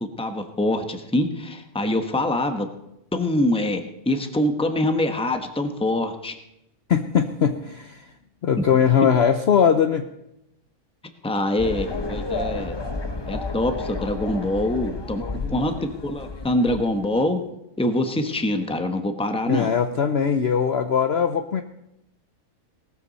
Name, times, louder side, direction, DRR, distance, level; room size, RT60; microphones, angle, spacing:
voice 1, 0.2-2.7 3.1-6.3 11.2-12.8 13.3-15.2 15.5-17.4 17.8-19.7, left 1 dB, 5° left, 6 dB, 0.9 m, -24 dB
voice 2, 6.9-8.1 8.4-10.1 15.2-15.6 19.5-21.6, left 7 dB, 55° left, 8 dB, 0.8 m, -21 dB
sound 1, 11.6-17.2, left 3 dB, 25° left, 0.5 m, -31 dB
18.5 x 13.5 x 4.1 m, 0.85 s
omnidirectional pair, 1.7 m